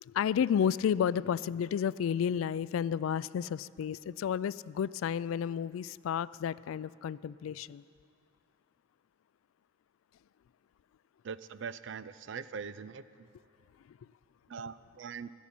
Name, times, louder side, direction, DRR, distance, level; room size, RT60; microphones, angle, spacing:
voice 1, 0.0-7.8 13.9-14.0, left 8 dB, 85° left, 19 dB, 0.3 m, -31 dB
voice 2, 11.2-13.3 14.5-15.3, right 6 dB, 65° right, 15 dB, 0.5 m, -42 dB
16.0 x 7.2 x 10.0 m, 2.4 s
head